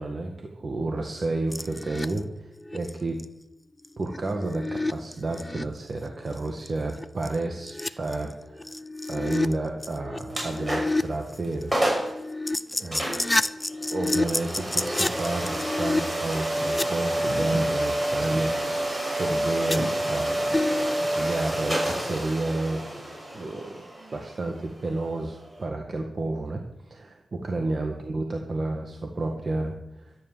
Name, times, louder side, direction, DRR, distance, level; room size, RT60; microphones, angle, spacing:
voice 1, 0.0-3.2 4.0-8.8 9.1-11.7 12.8-13.3 13.9-18.5 19.2-22.8 23.3-23.8 24.1-30.1, right 2 dB, 45° right, 3 dB, 1.7 m, -31 dB
sound 1, 1.5-2.2 2.6-2.9 3.2-3.3 3.8-5.6 6.2-6.4 6.7-6.8 7.0-9.5 9.8-11.0 11.3-16.8 19.7-20.2 20.5-21.0, left 2 dB, 15° left, 0.6 m, -30 dB
sound 2, 10.3-11.1 11.4-11.5 11.7-12.2 12.9-25.6, right 1 dB, 25° right, 6.3 m, -29 dB
13.5 x 10.0 x 7.4 m, 0.86 s
wide cardioid pair, 95°, 0 cm